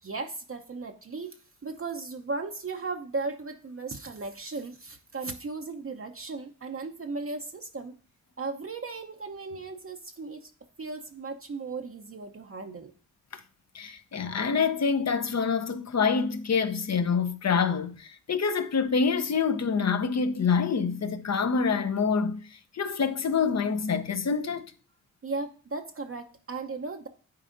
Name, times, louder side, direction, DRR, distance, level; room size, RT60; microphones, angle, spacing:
voice 1, 0.0-7.9 8.4-10.5 10.8-12.9 25.2-27.1, right 3 dB, 35° right, 0.8 m, -36 dB
voice 2, 13.7-24.7, left 5 dB, 45° left, 0.8 m, -26 dB
9.7 x 4.1 x 2.6 m
supercardioid pair, 45°, 37 cm